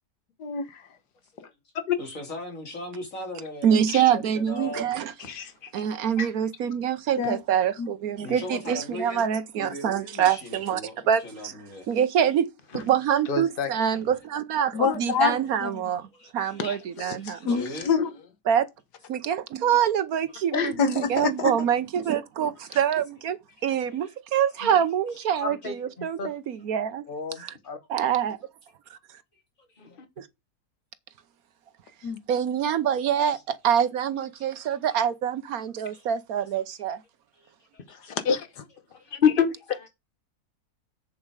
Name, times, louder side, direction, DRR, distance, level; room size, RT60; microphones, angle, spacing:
voice 1, 0.4-0.8 1.9-2.0 7.2-7.4 7.8-7.9 14.7-15.8 16.6-18.1 20.8-21.5 32.0-32.2 37.9-38.6, left 6 dB, 90° left, 1.8 m, -27 dB
voice 2, 2.0-4.9 8.2-9.3 9.6-11.9 16.1-16.6 17.2-17.9 21.1-21.2 24.0-24.1 26.0-26.1 27.3-27.4 29.7-29.8 33.2-33.4 34.4-34.8 35.9-36.1 37.4-37.8 38.9-39.1, left 1 dB, 55° left, 3.1 m, -39 dB
voice 3, 3.6-5.1 5.7-10.8 11.1-11.5 11.9-12.5 12.7-16.1 16.3-17.6 18.5-18.7 19.1-23.4 23.6-27.0 27.4-27.5 27.9-28.4 28.9-29.0 30.2-30.3 32.3-37.0, right 9 dB, 65° right, 1.2 m, -25 dB
voice 4, 5.2-5.8 6.2-6.3 12.7-12.8 13.2-13.7 20.5-20.7 24.6-24.8 25.4-26.3 27.1-27.8 29.8-30.1 38.9-39.9, left 7 dB, 35° left, 1.4 m, -28 dB
7.6 x 7.2 x 4.8 m
omnidirectional pair, 1.7 m